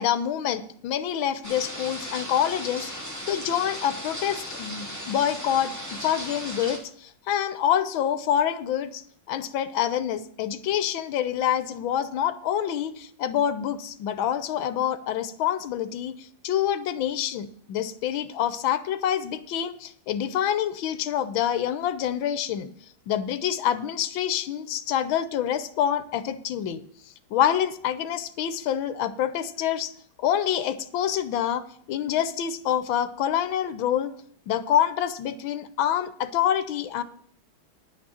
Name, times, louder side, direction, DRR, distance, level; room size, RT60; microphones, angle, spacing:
voice 1, 0.0-9.0 9.3-22.7 23.1-26.8 27.3-29.9 30.2-34.1 34.5-37.0, left 10 dB, 75° left, 12 dB, 1.6 m, -26 dB
sound 1, 1.4-6.8, equal, 10° right, 2.5 m, -36 dB
10.5 x 6.2 x 7.0 m, 0.62 s
omnidirectional pair, 2.3 m